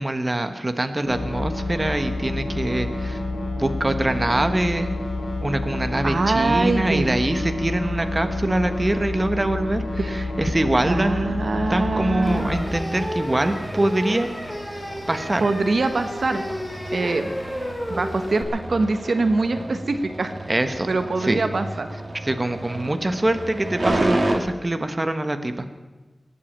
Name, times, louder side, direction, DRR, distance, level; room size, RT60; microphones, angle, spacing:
voice 1, 0.0-3.2 3.6-4.9 5.4-14.3 14.7-14.8 15.1-15.5 20.5-20.9 21.2-21.4 22.2-25.6, right 1 dB, 30° right, 8 dB, 1.2 m, -24 dB
sound 1, 1.1-12.6, left 2 dB, 85° left, 4.0 m, -28 dB
voice 2, 6.0-7.2 10.0-10.2 10.9-12.5 15.4-16.4 16.9-17.3 17.9-20.3 20.9-21.9, right 3 dB, 70° right, 8 dB, 1.1 m, -23 dB
sound 2, 11.6-24.3, right 1 dB, 45° right, 2.2 m, -32 dB
sound 3, 12.2-18.4, equal, 15° left, 3.9 m, -32 dB
19.0 x 8.5 x 8.7 m, 1.2 s
wide cardioid pair, 75°, 0 cm